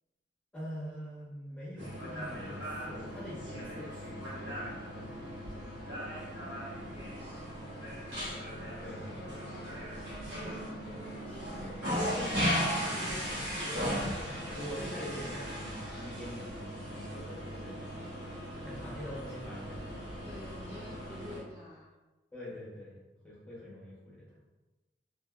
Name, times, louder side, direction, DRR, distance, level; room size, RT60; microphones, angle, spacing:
voice 1, 0.5-5.7 8.8-9.0 10.8-13.9 14.5-18.0 18.6-20.1 22.3-24.2, equal, 5° left, -7 dB, 0.7 m, -45 dB
sound 1, 1.8-21.4, equal, 75° right, 0.8 m, -37 dB
voice 2, 7.2-7.7 9.0-10.3 20.2-21.9, equal, 15° right, -9 dB, 0.4 m, -50 dB
2.6 x 2.1 x 2.2 m, 1.1 s
head